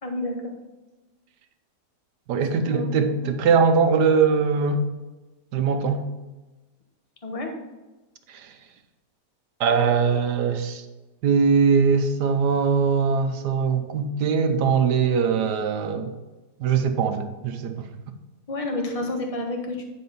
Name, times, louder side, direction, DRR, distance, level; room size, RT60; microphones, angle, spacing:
voice 1, 0.0-0.4 2.3-3.1 7.2-7.5 18.5-19.8, left 2 dB, 25° left, 1.0 m, -30 dB
voice 2, 2.3-4.9 5.5-6.0 8.3-8.5 9.6-10.8 11.2-16.1 16.6-17.8, right 5 dB, 70° right, 1.3 m, -21 dB
10.0 x 4.3 x 5.5 m
omnidirectional pair, 1.9 m